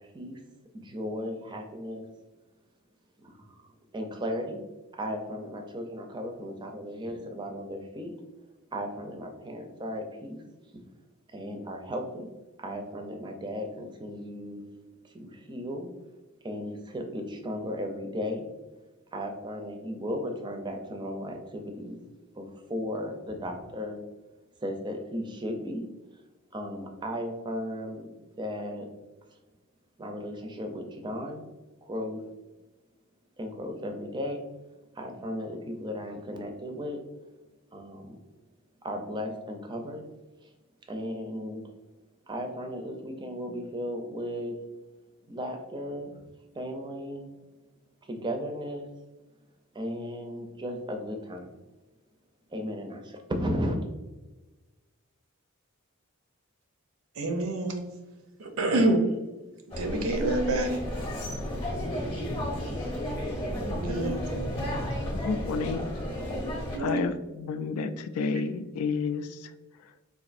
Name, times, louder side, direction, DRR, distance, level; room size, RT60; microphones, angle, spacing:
voice 1, 0.7-2.1 3.2-4.6 4.9-8.1 8.7-10.4 11.3-12.3 12.6-14.6 15.0-15.9 16.4-18.5 19.1-22.0 22.3-24.0 24.6-25.8 26.5-28.1 28.4-28.9 30.0-31.4 31.8-32.2 33.4-34.4 34.9-37.0 37.7-38.2 38.8-40.0 40.4-40.5 40.9-41.7 42.3-44.5 45.3-46.1 46.5-47.3 48.0-48.9 49.7-51.5 52.5-53.8, equal, 20° right, 4 dB, 0.4 m, -35 dB
voice 2, 57.2-57.8 58.4-59.0 59.7-60.8 63.9-64.7 66.7-67.0, right 2 dB, 70° right, 4 dB, 0.5 m, -27 dB
sound 1, 59.7-66.8, equal, 25° left, 0.8 m, -32 dB
voice 3, 65.1-65.8 66.8-69.5, left 5 dB, 80° left, 14 dB, 0.3 m, -30 dB
4.0 x 2.5 x 2.5 m, 1.1 s
head